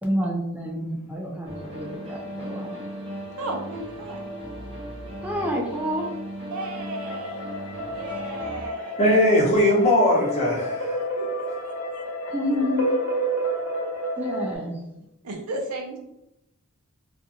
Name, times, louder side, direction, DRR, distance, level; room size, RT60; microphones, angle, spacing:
voice 1, 0.0-2.8 5.2-6.1 12.3-12.9 14.2-14.8, equal, 5° right, -1 dB, 0.3 m, -28 dB
sound 1, 1.4-8.7, right 1 dB, 25° right, 0.8 m, -37 dB
sound 2, 1.5-4.2 6.6-14.6, right 1 dB, 75° left, 0.6 m, -31 dB
voice 2, 3.4-4.2 6.5-7.4 7.9-9.1 11.2-12.0 15.2-16.0, right 2 dB, 90° right, 2 dB, 0.6 m, -35 dB
voice 3, 9.0-11.0, left 1 dB, 30° left, -3 dB, 0.7 m, -19 dB
2.4 x 2.3 x 2.7 m, 0.86 s
head